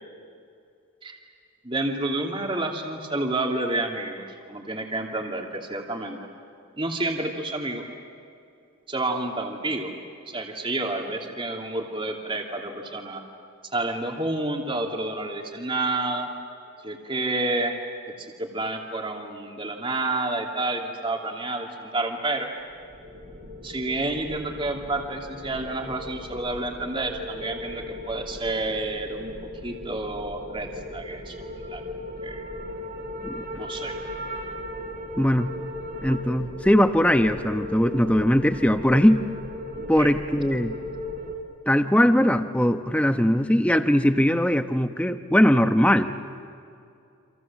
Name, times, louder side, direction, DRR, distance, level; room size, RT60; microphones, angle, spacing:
voice 1, 1.6-6.2 6.8-7.9 8.9-9.9 10.3-13.2 13.7-16.3 16.8-17.7 18.1-22.5 23.6-31.4 31.7-31.8 32.2-32.4 33.6-34.0 39.7-40.1, right 2 dB, 25° right, 2 dB, 2.8 m, -29 dB
sound 1, 22.7-41.4, left 1 dB, 45° right, 3.6 m, -37 dB
voice 2, 35.2-35.5 36.0-39.2 39.9-40.7 41.7-46.1, equal, 5° left, 9 dB, 0.9 m, -20 dB
29.0 x 27.5 x 7.5 m, 2.5 s
head